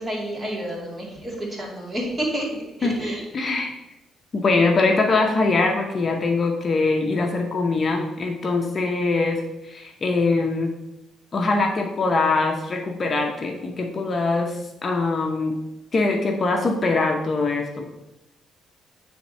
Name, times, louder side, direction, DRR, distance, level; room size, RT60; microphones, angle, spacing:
voice 1, 0.0-2.5 2.8-3.2, right 1 dB, 25° right, -2 dB, 2.3 m, -29 dB
voice 2, 2.8-3.7 4.3-10.7 11.3-15.6 15.9-17.9, left 3 dB, 40° left, 3 dB, 0.8 m, -23 dB
8.4 x 3.5 x 4.2 m, 0.93 s
cardioid pair, 90°, 0 cm